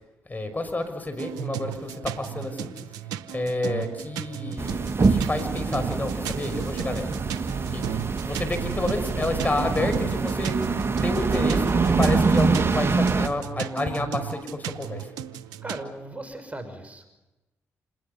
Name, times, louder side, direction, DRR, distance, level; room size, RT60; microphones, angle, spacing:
voice 1, 0.3-2.7 3.3-4.8 5.1-7.1 7.7-15.1, left 2 dB, 30° left, 7 dB, 6.3 m, -30 dB
sound 1, 1.2-15.8, right 10 dB, 90° right, 0.9 m, -36 dB
sound 2, 4.6-13.3, right 4 dB, 40° right, 1.6 m, -24 dB
voice 2, 15.6-17.2, right 2 dB, 20° right, 8 dB, 6.1 m, -38 dB
28.0 x 20.0 x 7.0 m, 1.0 s
hypercardioid pair, 45°, 6 cm